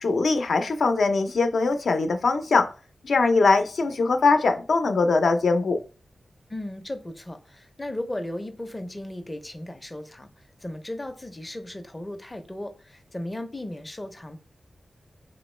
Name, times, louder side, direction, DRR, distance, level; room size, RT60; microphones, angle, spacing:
voice 1, 0.0-2.7 3.0-5.8, left 3 dB, 70° left, 0.6 m, -21 dB
voice 2, 6.5-10.3 10.6-14.4, left 1 dB, 15° left, 0.5 m, -36 dB
4.3 x 3.0 x 3.2 m
wide cardioid pair, 165°, 0 cm